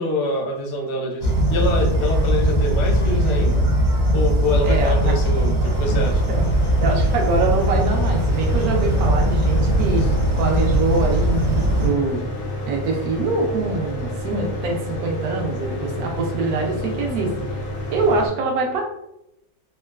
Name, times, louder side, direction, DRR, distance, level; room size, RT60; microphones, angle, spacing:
voice 1, 0.0-3.7 4.1-6.2 8.8-9.2 15.7-16.1, left 2 dB, 65° left, 0 dB, 0.7 m, -26 dB
sound 1, 1.2-11.9, right 1 dB, 35° right, 0.7 m, -19 dB
voice 2, 4.6-5.1 6.3-10.0 10.4-12.2 12.7-17.6 17.9-18.8, right 3 dB, 65° right, 1 dB, 1.0 m, -24 dB
Mechanical fan, 5.6-18.3, left 1 dB, 90° left, 1.6 m, -30 dB
3.7 x 2.2 x 2.2 m, 0.83 s
omnidirectional pair, 2.0 m